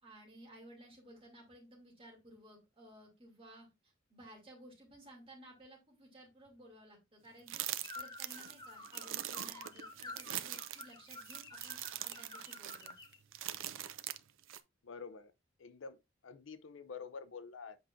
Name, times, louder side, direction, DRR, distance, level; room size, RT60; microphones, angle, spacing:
voice 1, 0.0-12.9, right 1 dB, 30° right, 2.9 m, -57 dB
sound 1, 7.5-14.6, right 12 dB, 75° right, 0.5 m, -42 dB
sound 2, 7.8-13.2, left 3 dB, 20° left, 0.9 m, -50 dB
voice 2, 14.8-15.3 15.6-16.0 16.2-17.8, left 5 dB, 70° left, 0.5 m, -47 dB
7.9 x 4.9 x 2.6 m
head